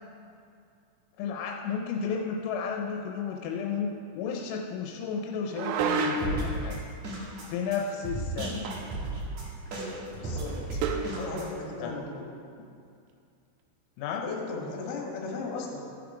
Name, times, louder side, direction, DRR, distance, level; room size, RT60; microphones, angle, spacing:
voice 1, 1.2-6.8 7.5-8.8 11.8-11.9 14.0-14.3, left 6 dB, 85° left, 1 dB, 3.3 m, -33 dB
sound 1, 5.5-6.5 8.7-9.0 9.3-9.4 10.8-11.2, right 5 dB, 80° right, 3.1 m, -29 dB
sound 2, 6.2-11.5, right 1 dB, 65° right, 1.8 m, -35 dB
voice 2, 10.2-10.8 11.1-12.3 14.2-15.9, left 3 dB, 60° left, -1 dB, 3.1 m, -36 dB
14.5 x 7.5 x 5.0 m, 2.4 s
omnidirectional pair, 6.0 m